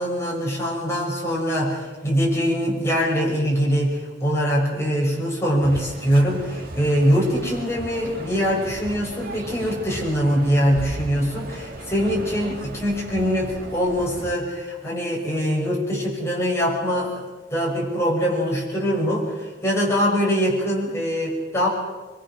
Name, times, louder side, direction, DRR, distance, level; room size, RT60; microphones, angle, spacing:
voice 1, 0.0-17.2 17.5-21.7, equal, 15° left, -3 dB, 6.3 m, -23 dB
sound 1, 5.6-14.3, right 2 dB, 50° right, 2.3 m, -36 dB
23.5 x 23.5 x 6.3 m, 1.3 s
head